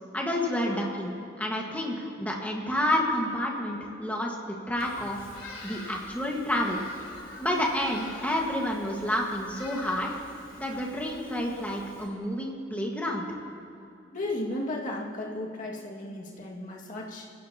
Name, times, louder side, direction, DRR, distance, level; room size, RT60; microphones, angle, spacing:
voice 1, 0.1-5.2 5.6-6.8 7.4-10.1 10.6-13.3, left 1 dB, 10° left, -1 dB, 1.6 m, -29 dB
Bird vocalization bird call bird song, 4.8-12.0, left 2 dB, 80° left, 3.7 m, -46 dB
voice 2, 14.1-17.3, left 1 dB, 40° left, -2 dB, 2.1 m, -34 dB
26.0 x 15.5 x 2.9 m, 2.7 s
head